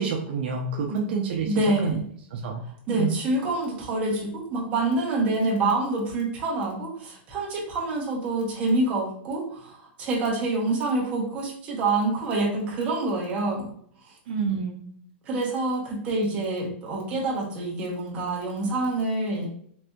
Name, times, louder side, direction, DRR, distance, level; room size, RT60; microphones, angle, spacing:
voice 1, 0.0-2.0 2.3-2.6 2.9-3.2 14.3-14.9, right 5 dB, 55° right, 1 dB, 0.5 m, -28 dB
voice 2, 1.4-2.0 2.9-13.7 14.1-14.2 15.3-19.5, right 2 dB, 20° right, -3 dB, 0.8 m, -26 dB
4.2 x 2.5 x 2.2 m, 0.63 s
supercardioid pair, 170°, 6 cm